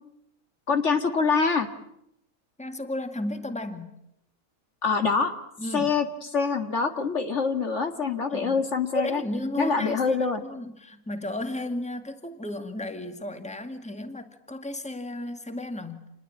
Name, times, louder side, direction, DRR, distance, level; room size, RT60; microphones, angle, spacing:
voice 1, 0.7-1.7 4.8-5.3 5.7-6.1 6.3-9.2 9.6-10.4, left 5 dB, 55° left, 7 dB, 2.2 m, -25 dB
voice 2, 2.6-4.0 5.6-5.9 8.3-8.6 8.9-10.2 10.4-16.1, left 1 dB, 5° left, 7 dB, 2.1 m, -33 dB
28.5 x 21.0 x 8.8 m, 0.82 s
omnidirectional pair, 1.5 m